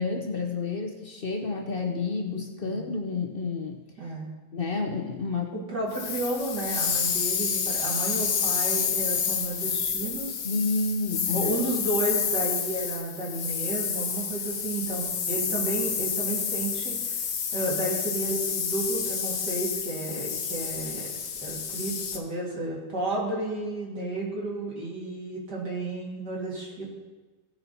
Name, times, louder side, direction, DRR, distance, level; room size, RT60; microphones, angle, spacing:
voice 1, 0.0-3.8 4.5-5.5 10.4-11.7, left 3 dB, 40° left, 3 dB, 0.9 m, -30 dB
voice 2, 4.0-4.3 5.7-10.4 11.3-17.2 17.5-21.1 21.4-26.9, right 2 dB, 65° right, -4 dB, 3.1 m, -32 dB
sound 1, 5.9-22.2, left 7 dB, 65° left, 1.4 m, -29 dB
16.5 x 6.0 x 4.1 m, 1.3 s
omnidirectional pair, 1.9 m